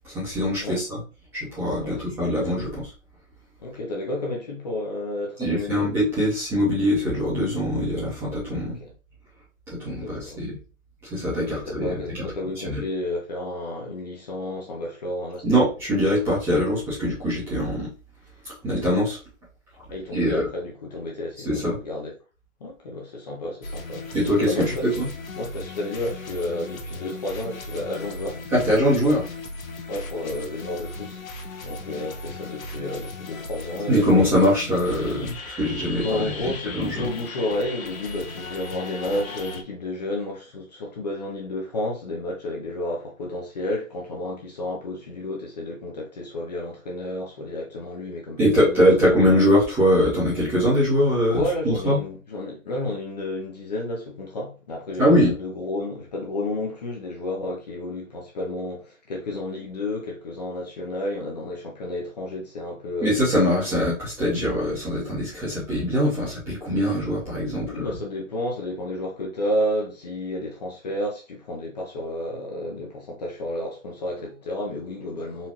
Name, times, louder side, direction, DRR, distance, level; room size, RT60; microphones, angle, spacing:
voice 1, 0.0-1.0 1.3-2.9 5.4-8.8 9.7-10.5 11.1-12.2 12.7-12.8 15.4-17.9 18.6-19.2 20.1-20.4 21.4-21.8 24.1-25.1 28.5-29.3 33.9-37.1 48.4-52.0 55.0-55.3 63.0-67.8, equal, 5° right, 0.8 m, -22 dB
voice 2, 3.6-5.9 8.8-8.9 10.0-10.4 11.5-15.4 19.9-22.1 22.6-24.9 25.4-28.4 29.9-31.2 31.6-34.2 36.0-48.8 51.3-63.2 67.5-75.5, left 1 dB, 30° left, 0.8 m, -31 dB
sound 1, 23.6-39.6, left 2 dB, 75° left, 0.9 m, -37 dB
4.2 x 2.6 x 2.9 m
hypercardioid pair, 160°, 42 cm